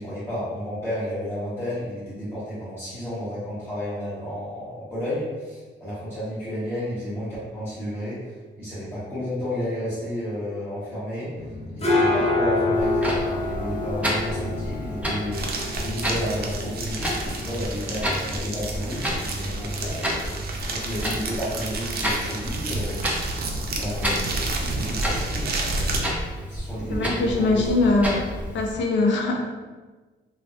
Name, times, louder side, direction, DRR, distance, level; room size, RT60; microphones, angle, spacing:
voice 1, 0.0-11.3 11.7-20.2 20.7-23.0 23.7-25.9 26.5-27.7, equal, 10° left, -13 dB, 1.3 m, -32 dB
sound 1, 11.4-28.9, left 2 dB, 30° left, 0.6 m, -30 dB
Clock, 12.7-28.7, equal, 5° right, 0.7 m, -31 dB
sound 2, 15.3-26.0, right 3 dB, 50° right, 0.5 m, -31 dB
voice 2, 26.9-28.2 28.5-29.5, left 2 dB, 70° left, 1 dB, 0.6 m, -22 dB
3.2 x 2.1 x 2.6 m, 1.3 s
cardioid pair, 90°, 20 cm